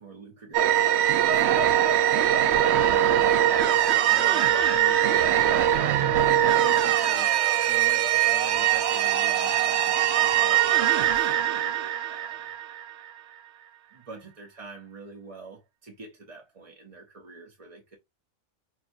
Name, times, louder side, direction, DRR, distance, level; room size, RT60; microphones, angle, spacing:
voice 1, 0.0-2.4 2.7-3.4 4.0-12.4 13.9-18.0, right 3 dB, 30° right, 0.7 m, -44 dB
sound 1, 0.5-13.1, right 11 dB, 65° right, 0.7 m, -22 dB
5.7 x 2.8 x 2.6 m
omnidirectional pair, 1.4 m